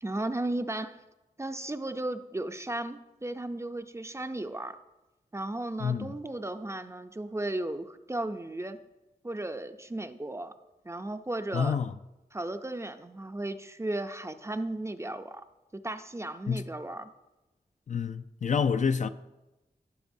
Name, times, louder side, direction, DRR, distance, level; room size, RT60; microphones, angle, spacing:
voice 1, 0.0-1.0 1.4-4.8 5.3-8.8 9.2-10.5 10.8-11.8 12.3-15.4 15.8-17.1, right 2 dB, 15° right, 0.5 m, -35 dB
voice 2, 5.8-6.1 11.5-11.9 16.5-16.6 17.9-19.1, left 6 dB, 50° left, 0.4 m, -28 dB
15.0 x 6.7 x 2.7 m
wide cardioid pair, 85°, 16 cm